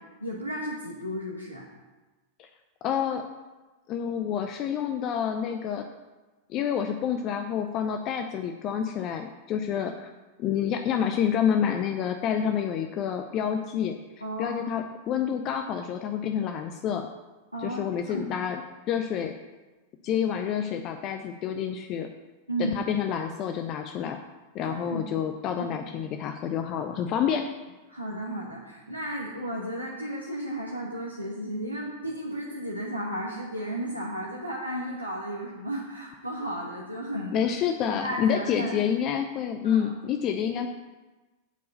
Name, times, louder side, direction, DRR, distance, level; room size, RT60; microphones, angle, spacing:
voice 1, 0.2-1.7 14.2-14.6 17.5-18.3 22.5-22.8 24.7-25.0 25.6-25.7 27.9-37.5 37.9-38.8 39.6-39.9, right 1 dB, 90° right, -4 dB, 1.1 m, -34 dB
voice 2, 2.8-3.3 3.9-5.9 6.5-10.1 10.4-13.9 14.4-17.1 17.6-18.6 18.9-19.4 20.0-22.1 22.6-24.2 24.5-27.5 37.3-40.7, left 8 dB, 35° left, 6 dB, 0.5 m, -28 dB
8.1 x 4.6 x 6.8 m, 1.2 s
figure-of-eight pair, 90°, 0 cm